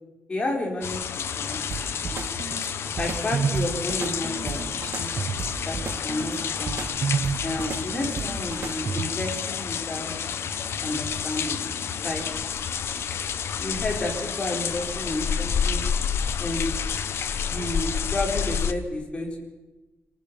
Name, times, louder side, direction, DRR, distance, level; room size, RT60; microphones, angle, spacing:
voice 1, 0.3-1.0 1.4-1.6 2.0-2.3 3.0-5.1 5.6-6.8 7.4-10.1 10.8-11.6 12.0-12.2 13.6-15.9 16.4-16.7 17.4-19.4, left 2 dB, 25° left, 0 dB, 4.7 m, -31 dB
sound 1, 0.8-18.7, left 7 dB, 70° left, 1.1 m, -29 dB
sound 2, 1.7-9.3, right 5 dB, 50° right, 1.1 m, -31 dB
26.0 x 18.5 x 7.1 m, 1.1 s
wide cardioid pair, 175°, 5 cm